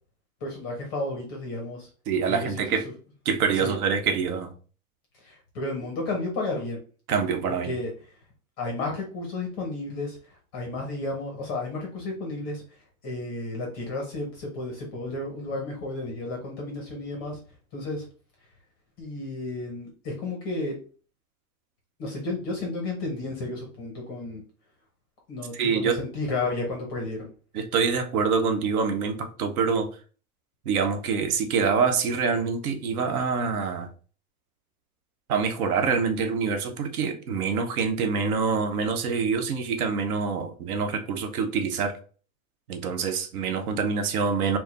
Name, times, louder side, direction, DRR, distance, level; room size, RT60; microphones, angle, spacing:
voice 1, 0.4-1.9 2.3-2.5 3.6-3.7 5.2-6.8 7.5-7.9 8.6-10.2 10.5-12.6 13.0-17.4 17.7-18.0 19.0-20.7 22.0-24.4 25.3-27.3, left 2 dB, 15° left, 0.5 m, -32 dB
voice 2, 2.1-2.9 3.2-4.5 7.1-7.8 25.5-26.0 27.5-29.9 30.6-33.9 35.3-42.0 42.7-44.6, right 5 dB, 80° right, 1.0 m, -25 dB
4.7 x 2.0 x 4.0 m
supercardioid pair, 180°, 44 cm